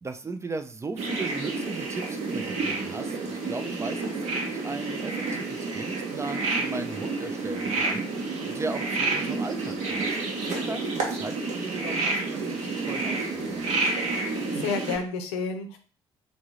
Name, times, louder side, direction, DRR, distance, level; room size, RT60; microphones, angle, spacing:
voice 1, 0.0-10.2 10.4-13.7, right 3 dB, 20° right, 8 dB, 0.5 m, -37 dB
sound 1, 1.0-15.0, right 3 dB, 55° right, 1.0 m, -29 dB
voice 2, 14.2-15.8, left 5 dB, 70° left, 6 dB, 0.6 m, -31 dB
3.9 x 3.6 x 3.0 m, 0.39 s
figure-of-eight pair, 50°, 14 cm